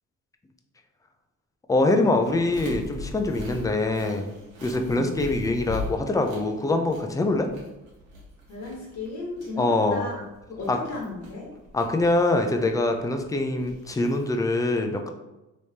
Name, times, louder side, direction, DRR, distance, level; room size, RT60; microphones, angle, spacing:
voice 1, 1.7-4.3 4.6-7.5 9.6-10.1 10.7-10.8 11.7-15.1, left 2 dB, 10° left, 5 dB, 0.4 m, -24 dB
sound 1, 2.2-14.4, left 2 dB, 90° right, 1.2 m, -41 dB
voice 2, 4.9-5.2 8.5-10.2 10.5-11.5, left 2 dB, 60° left, -4 dB, 1.1 m, -35 dB
3.4 x 3.1 x 2.7 m, 0.99 s
cardioid pair, 90°, 30 cm